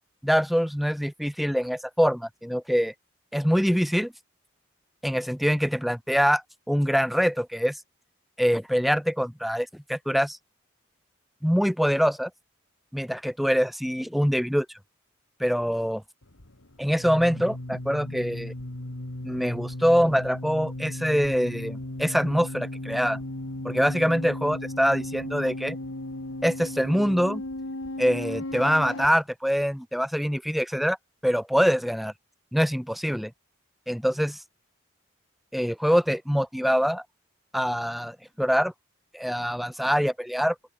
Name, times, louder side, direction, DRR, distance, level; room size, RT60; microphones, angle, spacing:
voice 1, 0.2-2.9 3.3-4.1 5.0-6.4 6.7-7.8 8.4-10.4 11.4-12.3 12.9-14.7 15.4-16.0 16.8-18.5 19.2-23.2 23.6-25.8 26.4-27.4 28.0-31.0 31.2-32.1 32.5-33.3 33.9-34.4 35.5-37.0 37.5-38.7 39.1-40.5, equal, ahead, 1.2 m, -24 dB
sound 1, 16.2-29.1, left 1 dB, 90° left, 2.4 m, -36 dB
open air
head